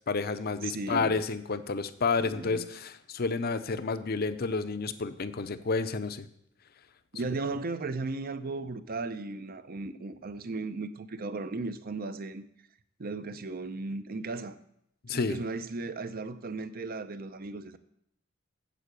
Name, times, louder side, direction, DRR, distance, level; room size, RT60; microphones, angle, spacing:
voice 1, 0.1-6.3 15.0-15.4, left 4 dB, 50° left, 0.7 m, -30 dB
voice 2, 0.6-1.2 2.2-2.7 7.1-12.4 13.0-14.6 15.1-17.8, right 3 dB, 50° right, 0.7 m, -36 dB
9.3 x 7.7 x 6.8 m
head